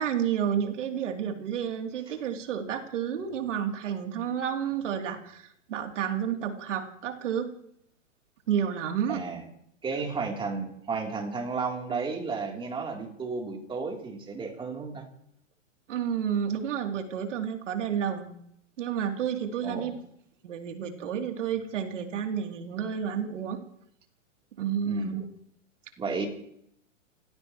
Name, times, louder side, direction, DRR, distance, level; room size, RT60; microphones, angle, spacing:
voice 1, 0.0-7.5 8.5-9.2 15.9-18.3 18.8-19.9 20.4-23.6 24.6-25.3, right 8 dB, 70° right, 3 dB, 3.2 m, -30 dB
voice 2, 9.1-9.4 9.8-15.1 19.6-19.9 24.8-25.2 26.0-26.3, right 4 dB, 15° right, 1 dB, 3.4 m, -33 dB
29.5 x 16.0 x 3.1 m, 0.71 s
hypercardioid pair, 140°, 38 cm